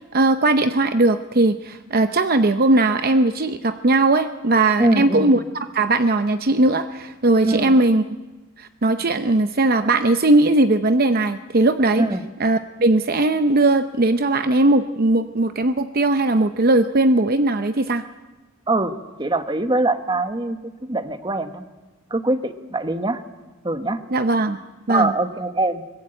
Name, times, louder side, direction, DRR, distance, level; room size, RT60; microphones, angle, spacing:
voice 1, 0.1-5.4 5.7-8.0 8.6-12.0 12.4-18.0 24.1-24.6 24.9-25.1, right 2 dB, 45° right, 9 dB, 0.7 m, -18 dB
voice 2, 4.8-5.4 7.4-7.7 12.0-12.3 18.7-21.6 22.1-23.2 23.6-24.0 24.9-25.8, right 2 dB, 20° right, 9 dB, 1.2 m, -23 dB
23.0 x 21.0 x 9.0 m, 1.2 s
head